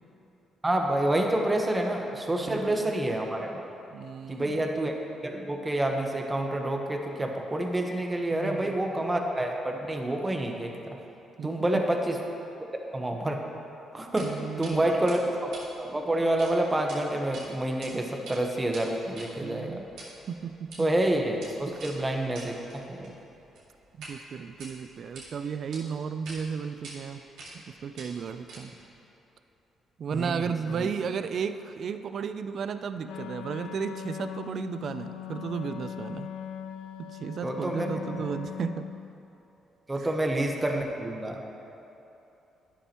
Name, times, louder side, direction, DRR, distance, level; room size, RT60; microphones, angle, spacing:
voice 1, 0.6-3.7 4.3-4.9 5.2-11.0 11.4-12.2 12.9-13.4 13.9-14.3 14.6-19.8 20.8-23.1 30.1-30.9 37.4-37.9 39.9-41.4, right 1 dB, 20° right, 2 dB, 1.1 m, -28 dB
voice 2, 2.1-2.8 3.9-4.7 8.3-8.8 11.4-11.9 14.2-15.0 19.4-19.9 20.3-20.9 21.7-21.8 24.0-27.2 27.5-28.7 30.0-36.3 37.0-38.9 39.9-40.1, right 6 dB, 60° right, 10 dB, 0.4 m, -34 dB
sound 1, 14.2-14.3 14.6-14.7 15.1-16.5 16.8-17.0 17.3-17.9 18.2-24.2 24.5-25.3 25.7-25.8 26.2-26.4 26.8-27.0 27.4-27.7 27.9-28.9, right 3 dB, 80° right, 2.2 m, -46 dB
Wind instrument woodwind instrument, 33.0-39.1, left 9 dB, 90° left, 0.3 m, -39 dB
12.0 x 10.0 x 3.0 m, 2.9 s
cardioid pair, 90°, 0 cm